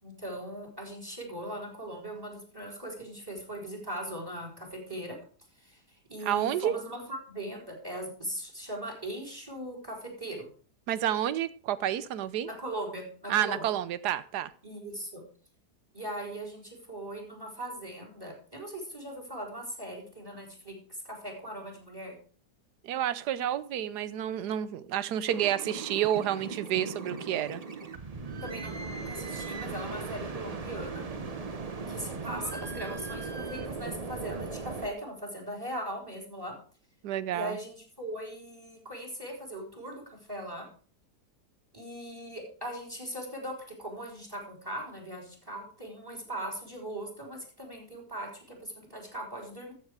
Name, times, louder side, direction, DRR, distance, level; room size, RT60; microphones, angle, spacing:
voice 1, 0.0-5.2 5.6-10.5 12.5-13.7 14.6-15.2 15.9-22.2 28.4-31.0 31.9-36.5 37.3-40.7 41.7-49.7, right 1 dB, 15° right, 2 dB, 3.7 m, -39 dB
voice 2, 6.2-6.7 10.9-12.5 13.3-14.5 22.8-27.6 37.0-37.6, right 11 dB, 80° right, 16 dB, 1.3 m, -30 dB
sound 1, 25.3-34.9, right 4 dB, 30° right, 0.8 m, -38 dB
13.5 x 7.3 x 4.8 m, 0.42 s
omnidirectional pair, 1.7 m